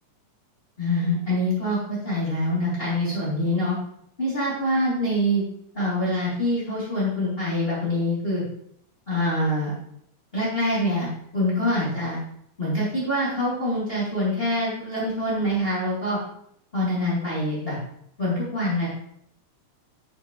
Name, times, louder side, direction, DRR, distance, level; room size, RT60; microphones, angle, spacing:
voice 1, 0.8-3.7 4.2-5.4 5.7-8.4 9.1-9.7 10.3-11.1 11.3-12.2 12.6-16.2 16.7-17.8 18.2-18.9, left 1 dB, 15° left, -8 dB, 3.6 m, -25 dB
10.5 x 7.3 x 3.4 m, 0.69 s
omnidirectional pair, 4.1 m